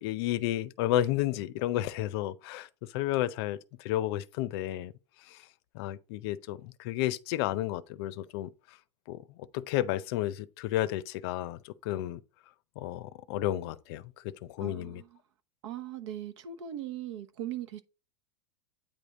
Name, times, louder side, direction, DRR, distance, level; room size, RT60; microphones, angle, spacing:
voice 1, 0.0-4.9 5.2-5.5 5.7-8.8 9.1-9.2 9.5-12.2 12.8-15.0, left 13 dB, 60° left, 0.5 m, -32 dB
voice 2, 14.6-15.2 15.6-17.8, right 11 dB, 75° right, 1.0 m, -39 dB
9.0 x 3.5 x 4.0 m
supercardioid pair, 140°, 15 cm